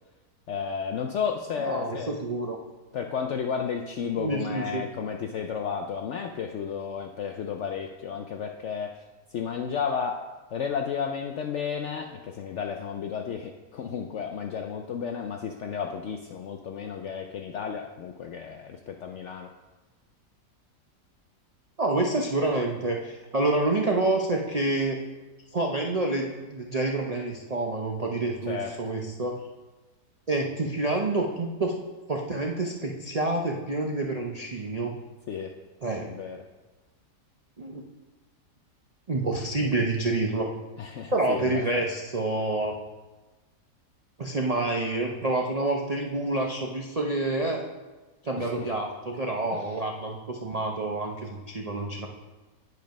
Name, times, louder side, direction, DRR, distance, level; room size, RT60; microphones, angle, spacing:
voice 1, 0.5-2.2 2.9-9.0 9.3-19.5 28.5-28.8 35.3-35.5 36.0-36.4 40.8-41.8 48.4-48.7 49.5-49.6, left 6 dB, 75° left, 4 dB, 0.6 m, -33 dB
voice 2, 1.6-2.6 4.2-4.8 21.8-25.0 25.5-29.4 30.3-31.8 32.1-34.9 35.8-36.1 37.6-37.9 39.1-40.5 41.1-42.8 44.2-47.6 48.2-52.1, right 2 dB, 75° right, 0 dB, 0.3 m, -28 dB
9.3 x 5.4 x 5.2 m, 1.2 s
omnidirectional pair, 1.8 m